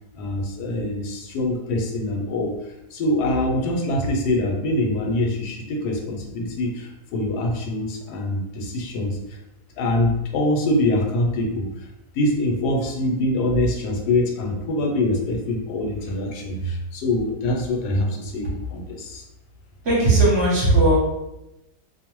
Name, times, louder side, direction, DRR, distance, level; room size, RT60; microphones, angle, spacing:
voice 1, 0.1-9.4 9.8-11.9 12.1-19.2, left 1 dB, 85° left, 2 dB, 1.1 m, -24 dB
voice 2, 19.8-21.0, right 2 dB, 50° right, -6 dB, 1.0 m, -17 dB
2.6 x 2.1 x 2.9 m, 0.93 s
omnidirectional pair, 1.6 m